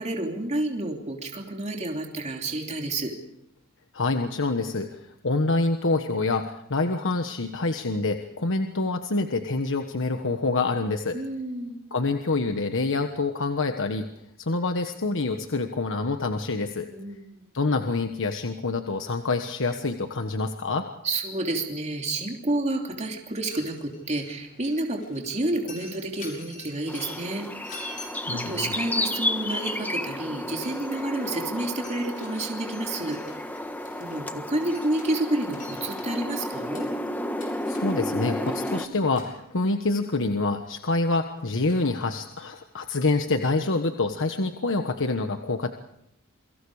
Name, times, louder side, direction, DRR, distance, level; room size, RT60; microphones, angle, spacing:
voice 1, 0.0-3.1 11.1-11.8 16.9-17.5 21.0-27.7 28.3-33.2 34.0-36.9, right 2 dB, 30° right, 1 dB, 3.1 m, -30 dB
voice 2, 3.9-11.2 11.9-14.1 14.4-16.9 17.5-20.9 28.3-28.8 37.7-45.7, left 3 dB, 60° left, 6 dB, 1.3 m, -26 dB
Mechanisms, 23.3-42.9, left 2 dB, 35° left, 7.6 m, -49 dB
sound 1, 26.9-38.9, left 1 dB, 10° left, 1.5 m, -32 dB
28.5 x 24.5 x 4.9 m, 0.79 s
head